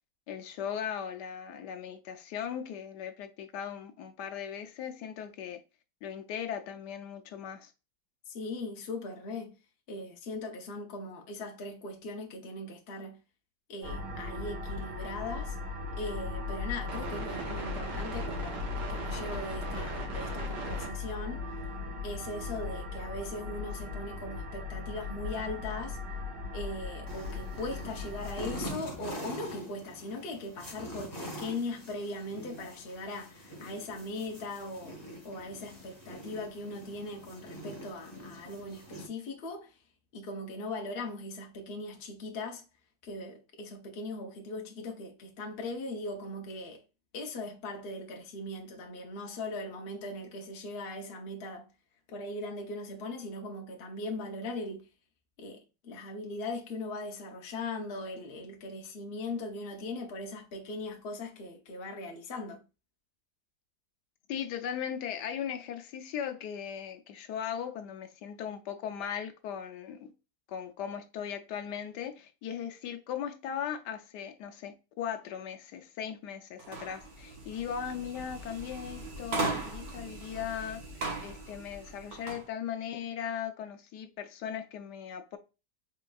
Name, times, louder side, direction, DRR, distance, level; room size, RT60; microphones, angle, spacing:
voice 1, 0.3-5.6 6.0-7.7 64.3-70.1 70.5-85.4, left 8 dB, 80° left, 1.2 m, -38 dB
voice 2, 8.3-9.5 9.9-13.2 13.7-15.6 16.0-21.5 22.0-26.0 26.5-35.0 35.2-39.8 40.1-42.6 43.0-46.8 47.1-51.7 52.1-54.9 55.4-62.6, left 2 dB, 45° left, 0.8 m, -39 dB
sound 1, 13.8-28.7, left 2 dB, 80° right, 1.9 m, -37 dB
sound 2, 27.1-39.1, equal, 15° left, 1.1 m, -44 dB
sound 3, 76.6-82.4, right 3 dB, 60° right, 1.6 m, -38 dB
4.3 x 3.7 x 2.3 m
omnidirectional pair, 1.8 m